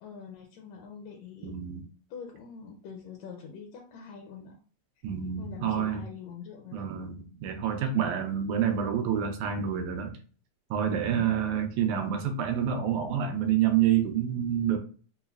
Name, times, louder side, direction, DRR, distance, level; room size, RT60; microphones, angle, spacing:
voice 1, 0.0-1.6 2.1-4.6 5.4-6.9 11.1-12.1, left 6 dB, 80° left, 2 dB, 1.6 m, -45 dB
voice 2, 1.4-1.8 5.0-6.0 6.7-10.2 10.7-14.8, right 9 dB, 80° right, 5 dB, 1.9 m, -28 dB
5.4 x 2.1 x 2.2 m, 0.39 s
omnidirectional pair, 3.4 m